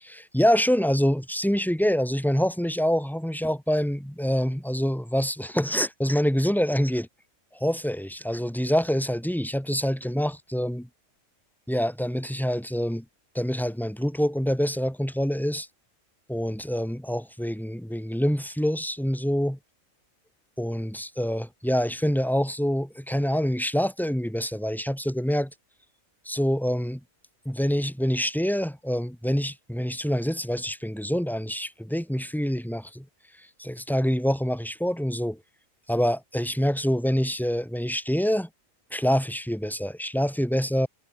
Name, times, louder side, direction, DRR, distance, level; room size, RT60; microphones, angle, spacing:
voice 1, 0.1-7.1 7.5-10.9 11.7-13.0 13.3-15.7 16.3-19.6 20.6-25.5 26.3-27.0 27.5-33.1 33.6-35.4 35.9-38.5 38.9-40.9, equal, ahead, 2.2 m, -26 dB
omnidirectional pair, 1.4 m